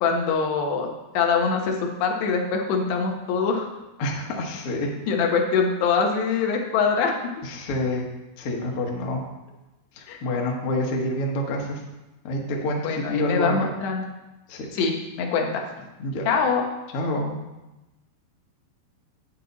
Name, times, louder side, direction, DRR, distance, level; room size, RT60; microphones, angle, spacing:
voice 1, 0.0-3.7 5.1-7.1 10.1-10.2 12.8-14.0 14.7-15.7 16.3-16.6, left 5 dB, 85° left, 2 dB, 3.3 m, -24 dB
voice 2, 4.0-4.9 7.4-8.0 8.4-9.2 9.9-11.8 12.2-13.7 14.5-14.7 16.0-16.2 16.9-17.4, left 1 dB, 70° left, 0 dB, 1.3 m, -27 dB
9.1 x 8.7 x 4.0 m, 1.0 s
omnidirectional pair, 4.7 m